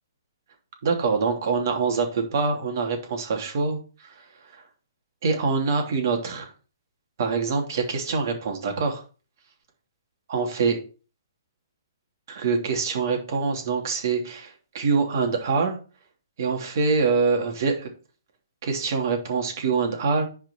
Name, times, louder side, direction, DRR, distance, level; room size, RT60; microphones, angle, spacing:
voice 1, 0.8-4.7 5.2-6.5 7.2-9.0 10.3-10.8 12.3-15.8 16.4-17.9 18.6-20.2, right 4 dB, 60° right, 3 dB, 3.0 m, -25 dB
10.5 x 5.0 x 4.6 m, 0.36 s
hypercardioid pair, 140°, 2 cm